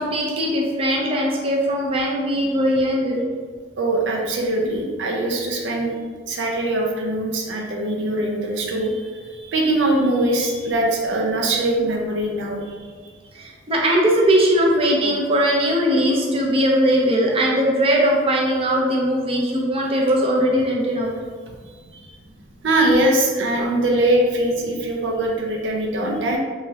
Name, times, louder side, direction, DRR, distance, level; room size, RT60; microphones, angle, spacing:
voice 1, 0.0-3.3 13.4-21.1 23.6-23.7, equal, 30° right, -2 dB, 0.5 m, -20 dB
voice 2, 3.8-6.0 6.3-12.6 22.6-26.4, right 1 dB, 85° right, 0 dB, 0.6 m, -22 dB
3.7 x 3.1 x 2.7 m, 1.5 s
head